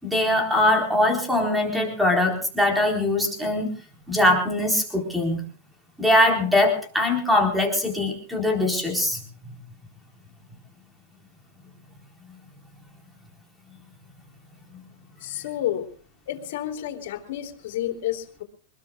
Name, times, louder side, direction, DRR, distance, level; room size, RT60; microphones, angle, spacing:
voice 1, 0.0-3.7 4.1-5.4 6.0-9.2, left 1 dB, 5° right, 2 dB, 4.1 m, -22 dB
voice 2, 15.2-15.9 16.3-18.4, left 12 dB, 60° left, 3 dB, 3.7 m, -30 dB
25.5 x 21.0 x 2.4 m, 0.40 s
supercardioid pair, 150°, 0 cm